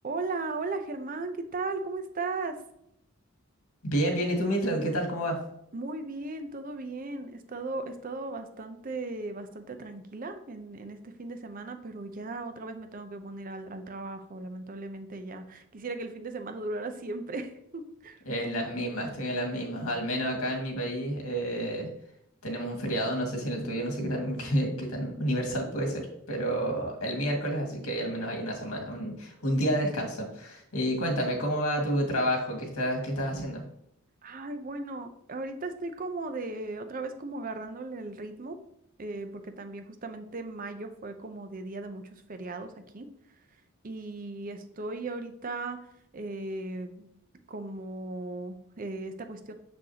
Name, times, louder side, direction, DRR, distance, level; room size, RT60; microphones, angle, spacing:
voice 1, 0.0-2.6 5.7-18.2 34.2-38.6 39.0-43.1 43.8-45.8 46.1-47.1 47.5-49.5, right 3 dB, 40° right, 8 dB, 0.6 m, -37 dB
voice 2, 3.8-5.4 18.3-21.9 22.4-33.6, equal, 90° left, 1 dB, 1.9 m, -30 dB
6.5 x 6.2 x 2.8 m, 0.75 s
head